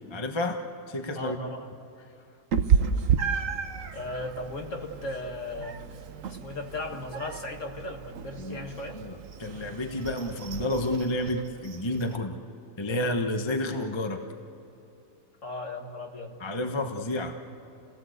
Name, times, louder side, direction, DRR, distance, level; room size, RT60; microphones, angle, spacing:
voice 1, 0.1-0.6 0.9-1.4 8.4-8.7 8.9-12.4 12.8-14.2 16.4-17.4, left 1 dB, 20° left, 4 dB, 0.9 m, -30 dB
voice 2, 1.1-1.7 3.9-6.0 6.3-9.0 15.4-16.4, left 2 dB, 45° left, 3 dB, 2.1 m, -37 dB
Meow, 2.5-12.2, right 7 dB, 50° right, 1.1 m, -31 dB
29.0 x 18.0 x 8.0 m, 2.9 s
omnidirectional pair, 2.0 m